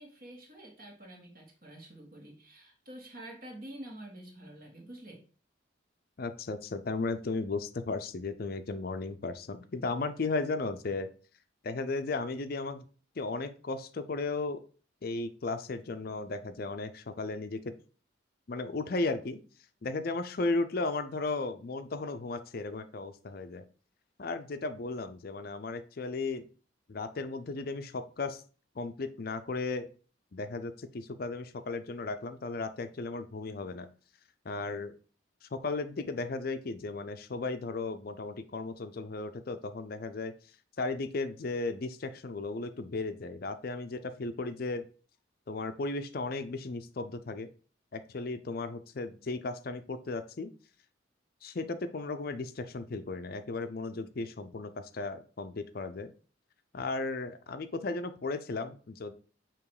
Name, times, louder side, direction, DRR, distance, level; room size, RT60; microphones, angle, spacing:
voice 1, 0.0-5.2, right 1 dB, 45° right, 0 dB, 2.0 m, -48 dB
voice 2, 6.2-11.1 11.6-12.8 13.2-14.6 15.0-17.7 18.5-19.4 19.8-23.6 24.2-26.5 26.9-28.4 28.8-29.9 30.3-33.9 34.5-34.9 35.4-40.3 40.8-44.9 45.5-47.5 47.9-50.5 51.4-56.1 56.7-59.1, left 3 dB, 50° left, 10 dB, 0.5 m, -35 dB
7.0 x 3.0 x 4.8 m, 0.38 s
head